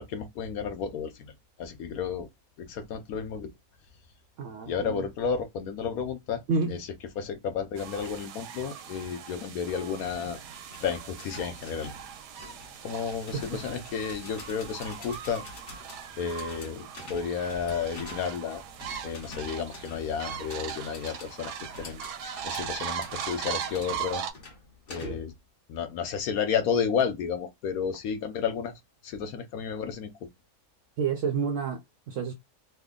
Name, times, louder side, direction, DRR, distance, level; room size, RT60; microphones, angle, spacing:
voice 1, 0.0-1.3 1.6-2.3 2.6-3.5 4.7-6.4 6.7-6.9 7.2-10.4 10.8-11.9 12.8-15.4 16.2-18.6 19.0-22.0 22.4-24.2 24.9-25.3 25.7-28.7 29.0-30.3, left 6 dB, 70° left, 1.0 m, -32 dB
voice 2, 4.4-5.1 6.5-6.8 13.3-13.6 25.0-25.2 31.0-31.8 32.1-32.3, right 5 dB, 70° right, 0.7 m, -29 dB
sound 1, 7.8-24.3, right 8 dB, 90° right, 1.2 m, -39 dB
sound 2, 10.0-25.4, left 2 dB, 45° left, 0.8 m, -47 dB
3.3 x 2.1 x 3.6 m
omnidirectional pair, 1.8 m